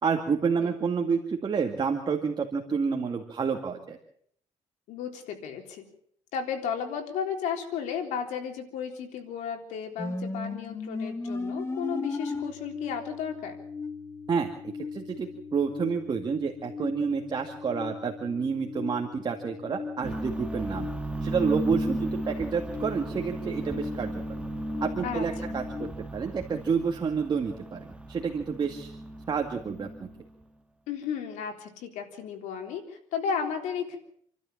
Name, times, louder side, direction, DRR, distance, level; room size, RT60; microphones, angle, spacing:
voice 1, 0.0-4.0 14.3-20.9 21.2-24.1 24.8-27.8 28.1-28.9 29.3-30.1, right 5 dB, 40° right, 2 dB, 2.3 m, -29 dB
voice 2, 4.9-5.8 6.3-13.6 25.0-25.6 30.9-34.0, left 7 dB, 90° left, 4 dB, 3.7 m, -34 dB
sound 1, 10.0-25.9, left 4 dB, 20° left, 2.3 m, -38 dB
sound 2, 20.0-30.3, right 1 dB, 10° right, 1.6 m, -35 dB
28.5 x 12.5 x 7.4 m, 0.64 s
cardioid pair, 100°, 12 cm